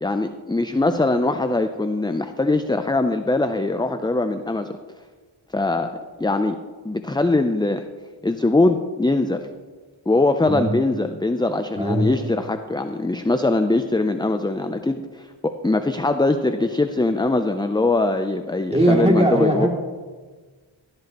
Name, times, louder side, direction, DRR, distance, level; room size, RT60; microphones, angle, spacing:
voice 1, 0.0-4.7 5.5-5.9 6.2-6.6 6.8-7.8 8.2-9.4 10.1-19.7, left 2 dB, 10° left, 8 dB, 0.5 m, -22 dB
voice 2, 11.7-12.1 18.7-19.7, right 1 dB, 15° right, -1 dB, 2.5 m, -19 dB
13.5 x 10.5 x 3.0 m, 1.4 s
wide cardioid pair, 40°, 46 cm